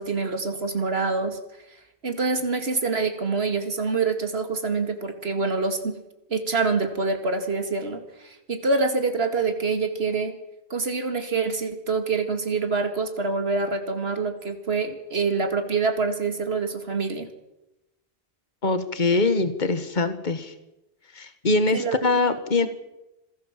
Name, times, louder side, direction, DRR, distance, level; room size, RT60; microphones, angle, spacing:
voice 1, 0.0-1.4 2.0-6.0 6.3-10.4 10.7-17.3 21.7-22.2, right 4 dB, 80° right, 6 dB, 2.5 m, -26 dB
voice 2, 18.6-20.5 21.2-22.7, left 3 dB, 50° left, 10 dB, 1.8 m, -23 dB
26.0 x 17.0 x 7.5 m, 0.93 s
omnidirectional pair, 1.0 m